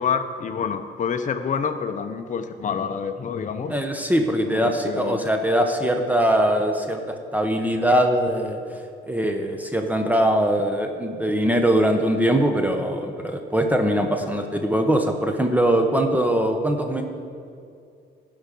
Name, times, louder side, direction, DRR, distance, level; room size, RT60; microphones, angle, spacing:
voice 1, 0.0-3.7 4.5-5.2, left 6 dB, 40° left, 7 dB, 0.7 m, -27 dB
voice 2, 3.7-8.6 9.1-17.0, right 1 dB, 10° right, 4 dB, 0.9 m, -22 dB
15.5 x 5.6 x 5.3 m, 2.4 s
cardioid pair, 90°, 20 cm